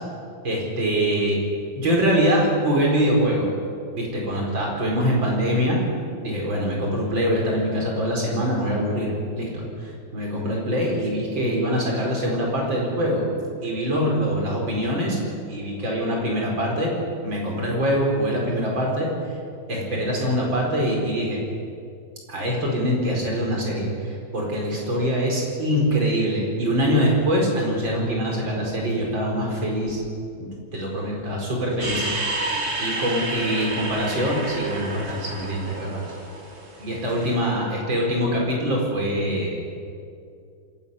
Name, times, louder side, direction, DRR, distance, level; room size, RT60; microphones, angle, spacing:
voice 1, 0.4-1.4 1.8-3.5 3.9-5.8 6.2-13.3 13.6-15.2 15.5-16.9 17.2-19.1 19.7-21.4 22.3-30.0 30.4-32.0 32.4-32.5 32.8-36.0 36.8-39.6, equal, 75° right, -2 dB, 5.4 m, -24 dB
sound 1, 31.8-37.2, right 2 dB, 50° right, 3.5 m, -30 dB
25.0 x 11.5 x 9.6 m, 2.4 s
omnidirectional pair, 2.1 m